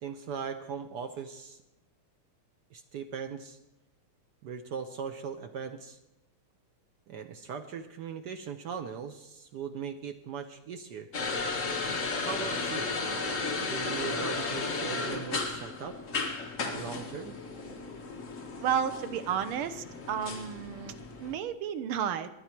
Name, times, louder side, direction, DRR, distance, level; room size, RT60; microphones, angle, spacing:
voice 1, 0.0-1.6 2.7-3.6 4.4-6.0 7.1-11.1 12.2-12.9 13.7-16.0 16.7-17.4, right 6 dB, 65° right, 8 dB, 1.1 m, -39 dB
sound 1, 11.1-21.4, left 3 dB, 40° left, 1.5 m, -34 dB
voice 2, 18.6-22.3, right 8 dB, 85° right, 12 dB, 1.7 m, -32 dB
20.5 x 9.7 x 4.4 m, 0.90 s
omnidirectional pair, 2.3 m